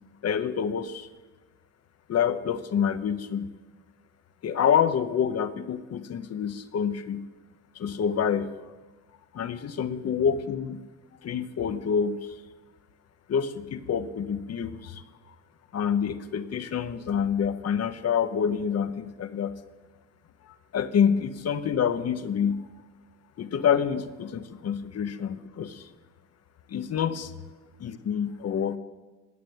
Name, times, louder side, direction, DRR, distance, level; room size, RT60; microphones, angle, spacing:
voice 1, 0.2-1.1 2.1-3.5 4.4-7.2 7.8-8.5 9.3-10.8 11.2-12.2 13.3-15.0 15.7-19.5 20.7-22.6 23.4-25.8 26.7-27.3 27.8-28.8, left 7 dB, 55° left, 11 dB, 1.0 m, -27 dB
16.5 x 6.8 x 9.5 m, 1.2 s
cardioid pair, 90°, 30 cm